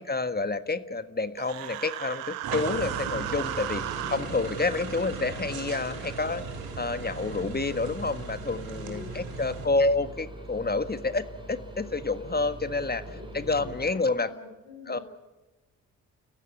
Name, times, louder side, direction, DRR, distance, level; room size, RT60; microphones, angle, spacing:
voice 1, 0.0-6.4 6.8-13.0 13.3-14.3 14.9-15.0, left 3 dB, 25° left, 12 dB, 1.6 m, -29 dB
Human voice, 1.4-4.2, right 13 dB, 85° right, 1.2 m, -35 dB
sound 1, 2.4-9.7, right 5 dB, 65° right, 3.3 m, -38 dB
sound 2, 2.7-13.9, right 2 dB, 10° right, 5.3 m, -43 dB
voice 2, 8.7-9.8 12.8-15.0, left 3 dB, 80° left, 2 dB, 5.9 m, -47 dB
30.0 x 15.0 x 9.4 m, 1.1 s
hypercardioid pair, 40°, 39 cm